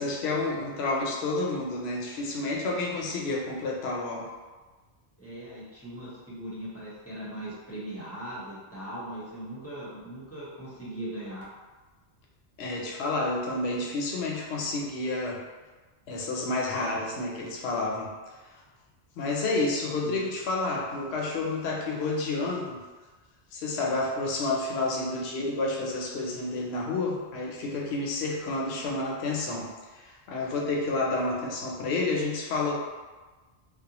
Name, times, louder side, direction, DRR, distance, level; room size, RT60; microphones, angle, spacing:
voice 1, 0.0-4.3 12.6-15.4 16.1-18.1 19.1-22.8 23.5-32.8, left 2 dB, 70° left, -1 dB, 0.8 m, -30 dB
voice 2, 5.2-11.5 20.0-20.2, right 1 dB, 15° left, -11 dB, 0.6 m, -39 dB
2.4 x 2.1 x 2.8 m, 1.3 s
omnidirectional pair, 1.2 m